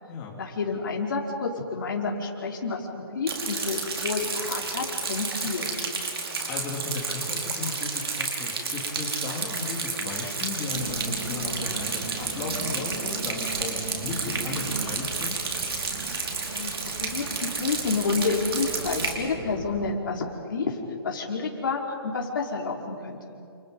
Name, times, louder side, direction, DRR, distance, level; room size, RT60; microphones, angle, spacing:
voice 1, 0.4-2.9 3.1-5.7 16.5-20.8 21.0-23.2, left 4 dB, 55° left, -1 dB, 4.6 m, -29 dB
Rain, 3.3-19.1, right 4 dB, 75° right, 5.0 m, -31 dB
voice 2, 6.5-15.4 19.4-19.6, left 3 dB, 15° left, -1 dB, 3.2 m, -35 dB
sound 1, 10.7-19.9, right 4 dB, 35° right, 2.4 m, -39 dB
29.5 x 29.0 x 5.5 m, 2.7 s
hypercardioid pair, 175°, 13 cm